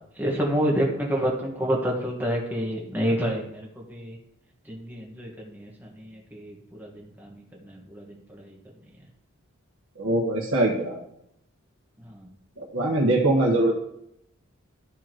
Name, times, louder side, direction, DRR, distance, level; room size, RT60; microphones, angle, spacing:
voice 1, 0.2-4.2 4.7-7.3 7.6-8.6 12.0-12.3, equal, 10° right, -2 dB, 1.5 m, -29 dB
voice 2, 10.0-11.0 12.7-13.7, right 2 dB, 70° right, -4 dB, 1.4 m, -22 dB
12.5 x 4.8 x 3.0 m, 0.76 s
head